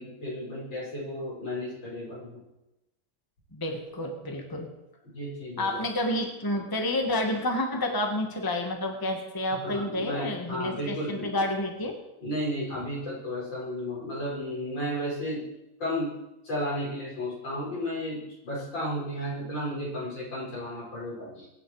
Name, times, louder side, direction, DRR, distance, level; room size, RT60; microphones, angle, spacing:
voice 1, 0.0-2.4 5.1-5.9 9.6-11.4 12.2-15.5 15.8-16.1 16.4-21.5, equal, 70° left, -5 dB, 7.2 m, -33 dB
voice 2, 3.5-4.7 5.6-11.9, left 1 dB, 10° left, 3 dB, 1.6 m, -29 dB
23.5 x 9.9 x 4.9 m, 0.92 s
omnidirectional pair, 2.1 m